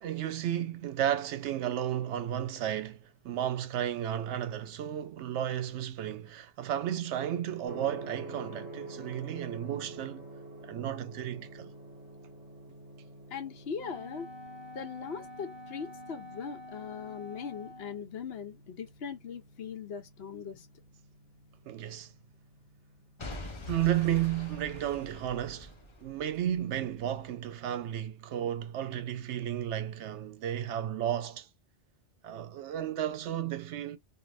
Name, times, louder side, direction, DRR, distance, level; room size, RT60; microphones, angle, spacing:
voice 1, 0.0-10.3 10.6-11.7 21.7-22.1 23.7-31.5 32.2-34.0, right 11 dB, 75° right, 0.8 m, -33 dB
Gong, 7.7-25.5, right 2 dB, 30° right, 1.4 m, -49 dB
voice 2, 13.3-14.3 14.7-20.7, left 6 dB, 65° left, 0.8 m, -40 dB
Wind instrument woodwind instrument, 13.8-18.1, left 1 dB, 45° right, 0.3 m, -47 dB
Boom / Shatter / Crushing, 23.2-27.2 27.7-27.8, left 2 dB, 35° left, 0.5 m, -45 dB
2.5 x 2.5 x 3.2 m
omnidirectional pair, 1.2 m